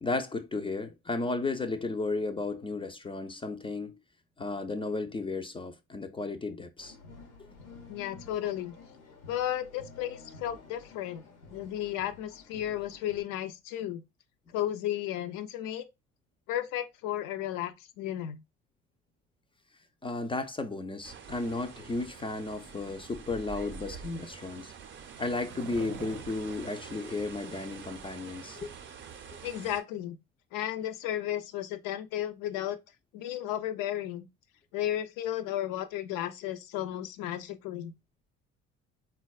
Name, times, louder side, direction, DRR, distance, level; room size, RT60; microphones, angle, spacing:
voice 1, 0.0-3.9 4.4-7.0 20.0-24.7 25.2-28.7, left 3 dB, 15° left, 0.3 m, -34 dB
sound 1, 6.8-13.2, left 4 dB, 90° left, 1.0 m, -51 dB
voice 2, 7.9-8.7 9.3-11.2 11.5-14.0 14.5-15.9 16.5-18.4 29.4-30.2 30.5-32.8 33.1-34.3 34.7-37.9, left 12 dB, 75° left, 0.5 m, -34 dB
sound 2, 21.0-29.8, right 6 dB, 35° right, 0.6 m, -46 dB
Skateboard, 22.6-28.0, right 8 dB, 80° right, 0.5 m, -50 dB
3.9 x 2.2 x 2.3 m
hypercardioid pair, 65°, 34 cm